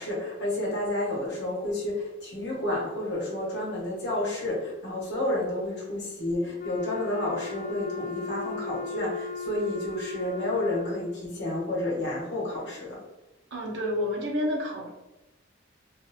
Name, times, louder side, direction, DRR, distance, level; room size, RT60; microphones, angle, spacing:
voice 1, 0.0-13.0, left 1 dB, 60° left, -5 dB, 1.0 m, -30 dB
Wind instrument woodwind instrument, 6.6-11.2, left 6 dB, 40° left, 0.4 m, -37 dB
voice 2, 13.5-14.9, left 1 dB, 70° right, -2 dB, 0.7 m, -29 dB
2.6 x 2.4 x 2.7 m, 1.0 s
head